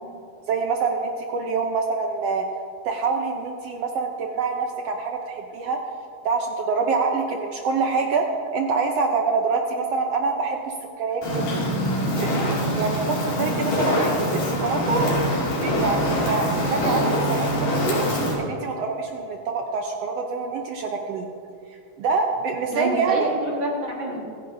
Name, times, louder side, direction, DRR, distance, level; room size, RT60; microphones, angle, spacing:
voice 1, 0.5-2.5 2.8-5.8 6.2-11.5 12.2-15.2 15.6-18.0 18.3-21.3 21.7-23.3, right 4 dB, 75° right, 3 dB, 1.4 m, -26 dB
Fire, 11.2-18.3, equal, 80° left, 4.1 m, -24 dB
voice 2, 22.7-24.3, right 1 dB, 45° right, -2 dB, 1.8 m, -28 dB
25.5 x 10.0 x 2.7 m, 2.5 s
omnidirectional pair, 3.7 m